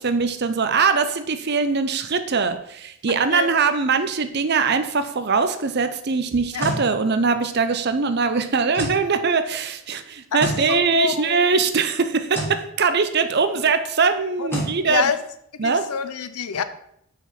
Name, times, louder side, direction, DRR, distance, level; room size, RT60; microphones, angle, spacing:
voice 1, 0.0-15.1 15.6-15.9, right 5 dB, 50° right, 10 dB, 0.6 m, -22 dB
voice 2, 3.1-3.5 6.5-6.6 10.3-10.4 10.7-11.4 14.4-14.5 14.9-15.2 15.6-16.6, left 6 dB, 85° left, 12 dB, 0.6 m, -26 dB
sound 1, 6.3-6.8 8.7-9.0 10.4-10.6 12.3-12.6 14.5-14.7, equal, 10° left, 1.5 m, -27 dB
5.8 x 4.6 x 5.8 m, 0.73 s
head